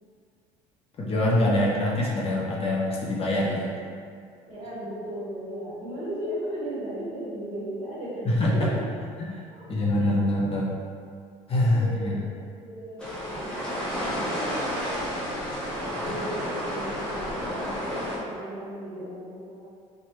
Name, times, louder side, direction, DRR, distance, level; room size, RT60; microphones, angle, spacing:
voice 1, 1.0-3.7 8.3-8.7 9.2-10.7 11.5-12.2, left 1 dB, 40° left, -5 dB, 0.6 m, -24 dB
voice 2, 4.5-8.8 10.0-10.1 11.7-12.2 12.5-19.7, equal, 40° right, -9 dB, 1.5 m, -37 dB
sound 1, 13.0-18.2, equal, 5° left, 1.0 m, -31 dB
2.9 x 2.2 x 3.0 m, 2.2 s
supercardioid pair, 85°, 16 cm